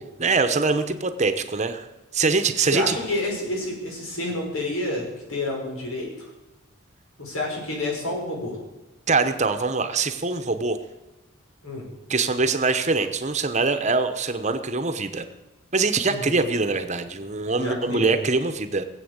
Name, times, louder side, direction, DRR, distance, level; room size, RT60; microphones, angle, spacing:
voice 1, 0.2-1.9 2.1-3.0 9.1-10.8 12.1-15.2 15.7-18.8, right 4 dB, 35° right, 9 dB, 1.0 m, -23 dB
voice 2, 2.7-6.3 7.2-8.6 11.6-11.8 16.1-16.5 17.6-18.2, left 2 dB, 90° left, -1 dB, 5.7 m, -29 dB
20.0 x 8.1 x 8.1 m, 1.1 s
head